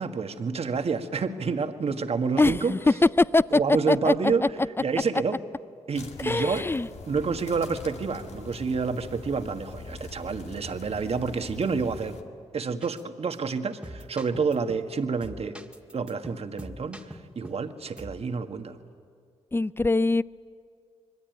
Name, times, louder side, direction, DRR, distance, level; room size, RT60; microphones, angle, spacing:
voice 1, 0.0-2.7 3.5-5.4 5.9-6.7 7.1-12.2 12.5-15.6 15.9-18.8, right 5 dB, 55° right, 7 dB, 1.7 m, -29 dB
voice 2, 2.4-2.8 3.2-3.6 3.9-4.1 6.2-6.9 19.5-20.2, left 2 dB, 20° left, 18 dB, 0.6 m, -22 dB
sound 1, 5.9-12.2, left 4 dB, 60° left, 2.1 m, -43 dB
sound 2, 12.8-13.0 13.3-13.4 13.8-14.9 15.2-17.7 18.0-18.2, equal, 10° right, 1.9 m, -43 dB
26.5 x 21.5 x 9.3 m, 2.2 s
supercardioid pair, 55°, 12 cm